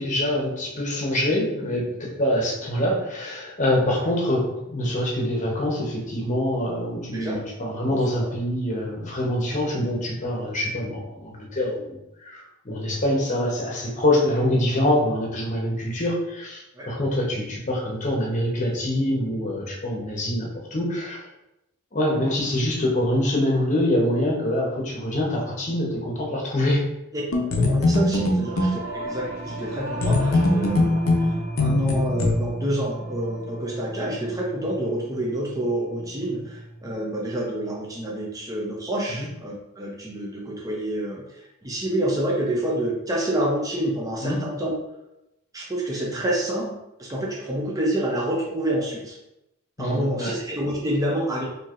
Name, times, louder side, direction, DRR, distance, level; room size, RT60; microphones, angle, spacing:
voice 1, 0.0-21.3 21.9-26.8 39.1-39.3 44.2-44.4 49.8-50.3, left 1 dB, 35° left, -2 dB, 0.8 m, -25 dB
voice 2, 7.9-8.3 12.9-13.0 16.8-16.9 27.1-27.2 27.6-44.8 45.5-49.2 49.8-51.5, right 1 dB, 15° right, -3 dB, 0.6 m, -28 dB
sound 1, 27.3-28.8 30.0-32.3, left 2 dB, 75° left, 0.7 m, -21 dB
Singing / Musical instrument, 28.4-37.9, right 1 dB, 75° right, 0.8 m, -35 dB
4.4 x 2.8 x 2.5 m, 0.89 s
head